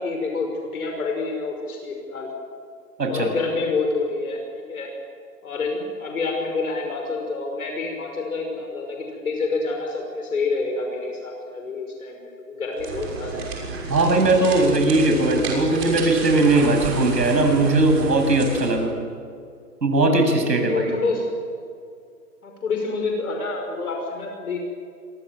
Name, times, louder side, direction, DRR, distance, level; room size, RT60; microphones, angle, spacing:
voice 1, 0.0-2.3 3.1-4.4 4.7-4.9 5.4-13.5 20.6-21.3 22.4-24.6, left 3 dB, 60° left, 2 dB, 5.9 m, -27 dB
sound 1, 12.7-18.8, right 4 dB, 40° right, 6.0 m, -31 dB
voice 2, 13.9-18.9 19.8-20.9, right 2 dB, 85° right, 4 dB, 7.6 m, -19 dB
28.0 x 23.5 x 7.6 m, 2.3 s
hypercardioid pair, 170°, 48 cm